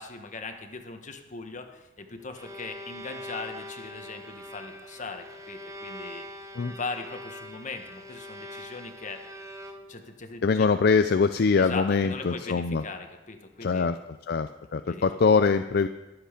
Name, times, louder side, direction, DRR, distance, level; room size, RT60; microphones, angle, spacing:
voice 1, 0.0-6.2 6.7-9.2 9.9-10.7 11.6-13.9 14.9-15.0, left 4 dB, 45° left, 6 dB, 1.4 m, -39 dB
Bowed string instrument, 2.1-10.1, left 1 dB, 20° right, 1.0 m, -43 dB
voice 2, 10.4-12.8 13.6-14.0 14.3-15.9, left 5 dB, 60° left, 9 dB, 0.5 m, -23 dB
21.5 x 8.0 x 5.1 m, 1.1 s
head